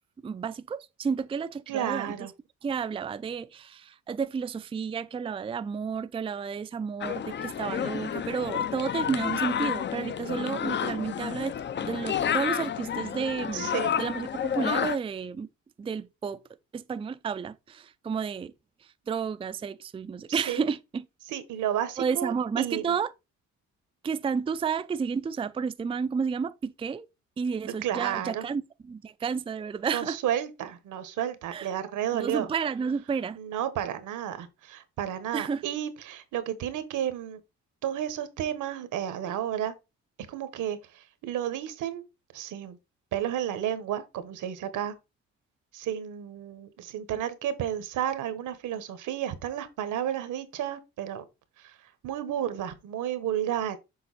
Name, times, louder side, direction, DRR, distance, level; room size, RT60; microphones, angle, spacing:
voice 1, 0.2-2.2 2.6-11.5 11.8-13.7 14.0-15.5 15.8-16.4 16.7-18.5 18.8-21.1 22.0-23.1 24.0-27.1 27.4-30.2 31.5-31.7 32.1-33.4 35.3-35.6, right 6 dB, 20° right, 0.4 m, -31 dB
voice 2, 1.7-2.3 13.5-13.9 20.3-20.7 21.3-22.9 27.8-28.4 29.9-32.5 33.4-37.4 37.8-39.7 40.3-42.0 42.3-42.8 43.1-44.9 45.7-51.2 51.6-51.7 52.0-53.8, right 10 dB, 80° right, 1.2 m, -32 dB
sound 1, 7.0-15.0, left 8 dB, 40° left, 0.5 m, -30 dB
7.0 x 3.9 x 4.0 m
cardioid pair, 90°, 30 cm